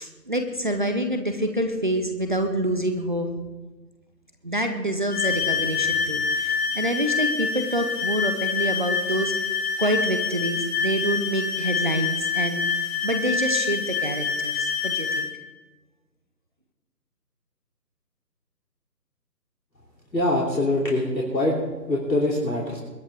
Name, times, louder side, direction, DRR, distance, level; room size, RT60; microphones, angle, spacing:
voice 1, 0.0-3.3 4.4-9.3 9.8-15.3, right 1 dB, 30° right, 6 dB, 0.8 m, -27 dB
sound 1, 5.1-15.3, left 6 dB, 40° left, 2.7 m, -26 dB
voice 2, 20.1-21.6 21.9-22.8, left 1 dB, 85° left, -4 dB, 3.2 m, -23 dB
21.5 x 11.0 x 3.5 m, 1.2 s
figure-of-eight pair, 160°, 50 cm